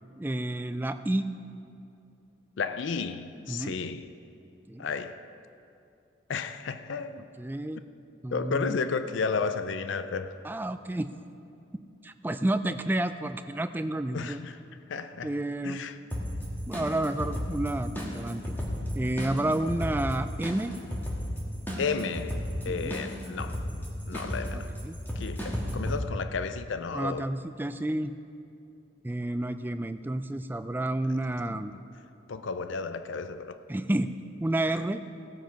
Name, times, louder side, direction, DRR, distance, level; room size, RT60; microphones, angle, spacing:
voice 1, 0.2-1.3 3.5-3.7 4.7-4.9 7.4-7.8 8.2-8.8 10.4-11.1 12.0-14.4 15.2-15.8 16.7-18.4 18.9-20.7 22.7-23.0 24.1-24.2 24.5-25.0 26.9-28.1 29.0-31.7 33.7-34.1 34.4-35.0, right 1 dB, 10° right, 0.3 m, -30 dB
voice 2, 2.6-4.1 4.8-5.2 6.3-7.2 8.3-10.4 14.1-14.6 14.9-15.4 15.6-16.0 21.8-23.7 24.1-24.7 25.2-27.3 31.4-31.8 32.3-33.6, left 5 dB, 65° left, 0.4 m, -33 dB
sound 1, 16.1-26.0, equal, 10° left, 1.5 m, -34 dB
17.0 x 7.7 x 5.1 m
head